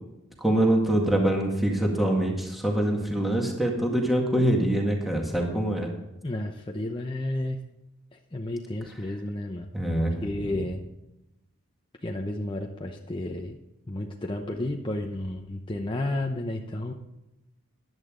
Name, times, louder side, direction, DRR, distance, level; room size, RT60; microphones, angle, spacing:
voice 1, 0.4-5.9 9.7-10.1, right 1 dB, ahead, 0 dB, 1.9 m, -24 dB
voice 2, 6.2-7.6 8.3-9.7 10.0-10.8 12.0-13.6 13.9-16.9, left 1 dB, 25° left, 1 dB, 0.8 m, -32 dB
14.5 x 10.5 x 3.8 m, 0.92 s
head